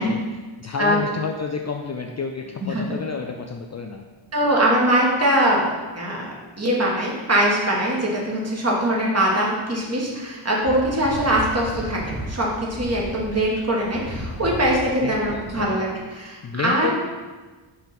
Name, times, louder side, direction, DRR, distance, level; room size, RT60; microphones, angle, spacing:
voice 1, 0.0-4.0 15.0-15.7 16.4-16.9, left 5 dB, 35° left, 3 dB, 0.4 m, -30 dB
voice 2, 4.3-6.3 6.6-16.9, right 1 dB, 30° right, -3 dB, 1.5 m, -22 dB
sound 1, 10.6-15.7, equal, 15° right, 1.4 m, -35 dB
5.7 x 3.5 x 5.9 m, 1.3 s
wide cardioid pair, 115°, 50 cm